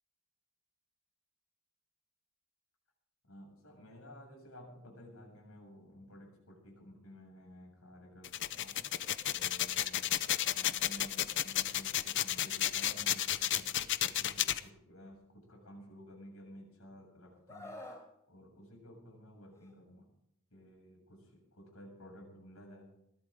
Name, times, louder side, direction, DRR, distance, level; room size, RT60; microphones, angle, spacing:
voice 1, 3.2-8.8 9.3-17.8 18.3-20.1 20.5-22.9, equal, 75° left, 0 dB, 7.6 m, -53 dB
sound 1, 8.2-14.6, left 12 dB, 55° left, 0.7 m, -32 dB
Screaming, 17.5-18.0 19.5-19.7, left 1 dB, 15° left, 4.4 m, -47 dB
21.0 x 15.0 x 3.8 m, 0.79 s
head